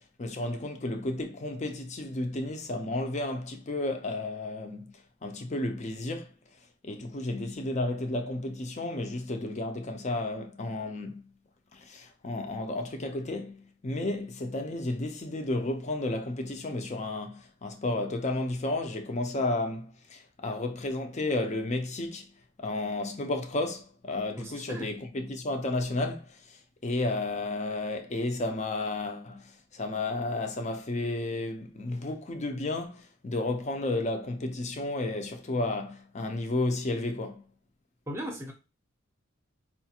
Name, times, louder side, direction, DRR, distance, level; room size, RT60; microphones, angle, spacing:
voice 1, 0.2-4.9 5.2-6.3 6.8-11.3 11.7-22.3 22.6-37.4, left 2 dB, 35° left, 0.5 m, -32 dB
voice 2, 24.4-24.9 38.1-38.5, equal, 15° right, 0.7 m, -37 dB
4.9 x 2.4 x 2.8 m
head